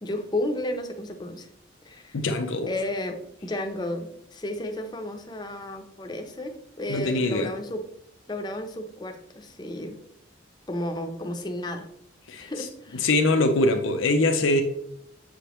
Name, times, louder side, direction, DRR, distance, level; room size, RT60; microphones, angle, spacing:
voice 1, 0.0-1.5 1.8-2.2 2.7-7.8 8.3-10.0 10.7-11.9 12.4-13.1, left 1 dB, 20° left, 5 dB, 0.6 m, -33 dB
voice 2, 2.1-2.7 6.9-7.5 12.3-12.7 12.9-14.6, left 2 dB, 90° left, 5 dB, 0.6 m, -23 dB
6.9 x 5.0 x 3.0 m, 0.72 s
head